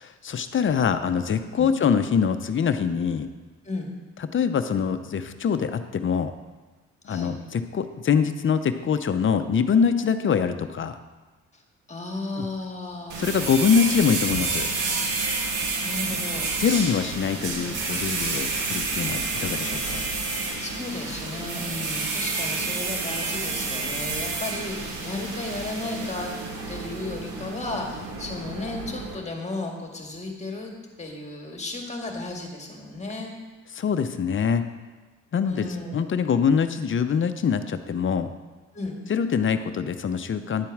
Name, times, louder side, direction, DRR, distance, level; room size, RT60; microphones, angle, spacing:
voice 1, 0.0-3.3 4.3-6.3 7.0-11.0 12.4-12.5 13.2-14.7 16.6-20.0 33.7-34.6 35.3-35.6 35.9-38.3 39.1-40.7, left 6 dB, 40° left, 10 dB, 0.7 m, -24 dB
voice 2, 11.9-13.3 15.8-16.5 20.4-26.3 26.7-30.7 31.0-33.4 35.4-36.4 38.7-39.0, left 2 dB, 20° left, 1 dB, 1.8 m, -34 dB
sound 1, 13.1-29.1, right 3 dB, 85° right, 1.9 m, -29 dB
10.5 x 4.5 x 7.2 m, 1.3 s
cardioid pair, 90°, 30 cm